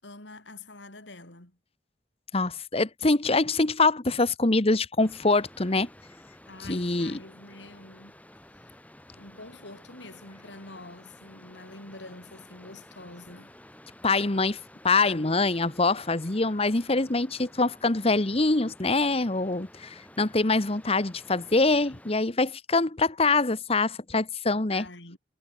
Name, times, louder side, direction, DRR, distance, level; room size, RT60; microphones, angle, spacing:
voice 1, 0.0-1.6 6.5-8.1 8.5-8.8 9.2-13.5 15.0-15.4 24.5-25.2, left 2 dB, 90° left, 6.9 m, -46 dB
voice 2, 2.3-5.9 6.6-7.2 14.0-14.6 14.8-24.9, left 3 dB, 35° left, 1.2 m, -24 dB
sound 1, 5.0-22.1, left 1 dB, 10° left, 5.4 m, -52 dB
head